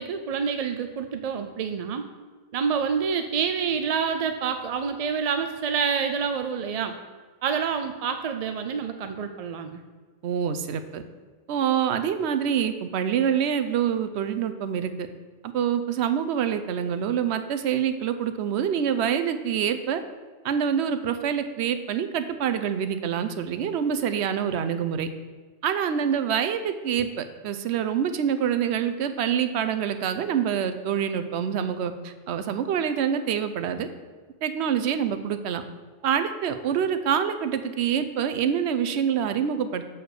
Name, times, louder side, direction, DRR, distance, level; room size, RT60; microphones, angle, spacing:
voice 1, 0.0-2.0 2.5-7.0 7.4-9.8, right 6 dB, 55° right, 7 dB, 0.4 m, -27 dB
voice 2, 10.2-11.0 11.5-15.1 15.5-20.0 20.4-25.1 25.6-33.9 34.4-35.6 36.0-39.8, right 8 dB, 85° right, 9 dB, 0.9 m, -26 dB
6.8 x 4.3 x 6.5 m, 1.4 s
omnidirectional pair, 1.1 m